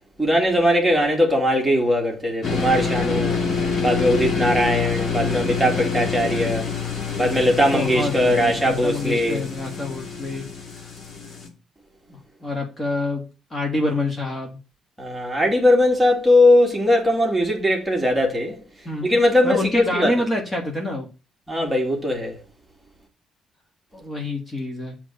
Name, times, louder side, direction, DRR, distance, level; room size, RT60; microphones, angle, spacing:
voice 1, 0.2-3.4 3.8-6.7 7.2-9.4 15.0-18.6 19.0-20.1 21.5-22.3, left 1 dB, 5° right, 2.4 m, -20 dB
sound 1, 2.4-11.5, left 5 dB, 50° left, 2.5 m, -27 dB
voice 2, 7.5-10.5 10.8-10.9 12.1-13.2 13.5-14.6 18.9-19.1 19.4-21.1 23.9-25.0, left 2 dB, 25° left, 1.9 m, -27 dB
7.5 x 3.7 x 6.6 m
cardioid pair, 115°, 0 cm